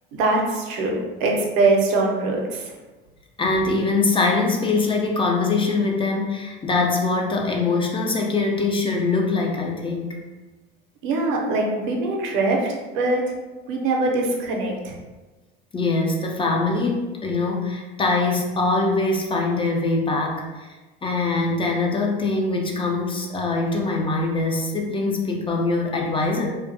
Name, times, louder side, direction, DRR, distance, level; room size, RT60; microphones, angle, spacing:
voice 1, 0.1-2.7 11.0-13.2 13.7-14.9, right 2 dB, 65° right, 0 dB, 0.7 m, -22 dB
voice 2, 3.4-10.1 15.7-20.7 21.0-26.5, left 3 dB, 20° left, 0 dB, 0.3 m, -23 dB
2.5 x 2.2 x 2.5 m, 1.2 s
hypercardioid pair, 75°, 30 cm